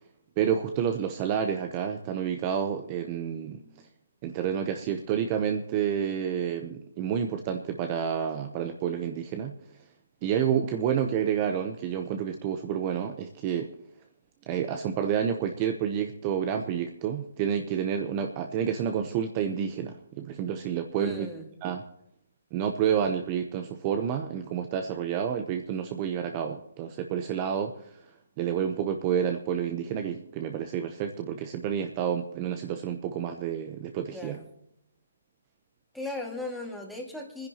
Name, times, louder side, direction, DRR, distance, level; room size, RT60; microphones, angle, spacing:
voice 1, 0.4-3.6 4.2-9.5 10.2-13.7 14.5-21.3 21.6-21.8 22.5-28.0 28.4-34.4, right 8 dB, 25° right, 5 dB, 0.8 m, -29 dB
voice 2, 21.0-21.5 34.1-34.5 35.9-37.5, left 2 dB, ahead, -1 dB, 2.0 m, -37 dB
27.5 x 10.5 x 2.9 m, 0.78 s
hypercardioid pair, 155°, 0 cm